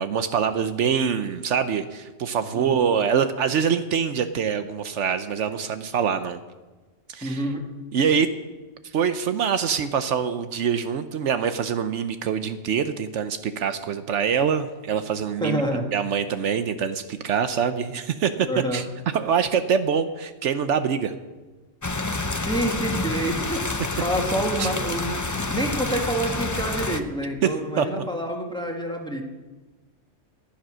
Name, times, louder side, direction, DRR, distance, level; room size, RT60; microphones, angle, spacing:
voice 1, 0.0-6.4 7.1-7.4 7.9-8.4 8.8-15.6 15.9-18.5 18.7-18.8 19.1-21.1 24.6-24.7 27.4-28.0, right 7 dB, 75° right, 10 dB, 1.0 m, -24 dB
voice 2, 7.2-7.6 15.4-15.8 18.4-18.9 22.3-25.2 25.5-29.2, right 1 dB, 5° left, 1 dB, 1.6 m, -27 dB
sound 1, 21.8-27.0, left 2 dB, 20° left, 0.5 m, -28 dB
14.5 x 10.5 x 6.2 m, 1.2 s
omnidirectional pair, 1.3 m